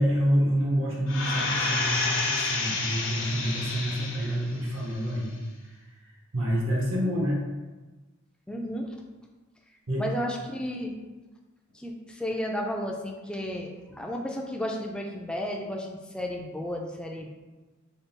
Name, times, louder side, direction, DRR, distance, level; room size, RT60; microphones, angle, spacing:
voice 1, 0.0-5.4 6.3-7.4 9.9-10.1, equal, 70° right, -4 dB, 0.7 m, -27 dB
sound 1, 1.1-4.5 4.9-5.0, left 3 dB, 65° left, 0.6 m, -29 dB
voice 2, 8.5-8.9 10.0-10.9 11.7-17.3, equal, 5° left, 0 dB, 0.3 m, -33 dB
3.6 x 2.3 x 3.9 m, 1.2 s
head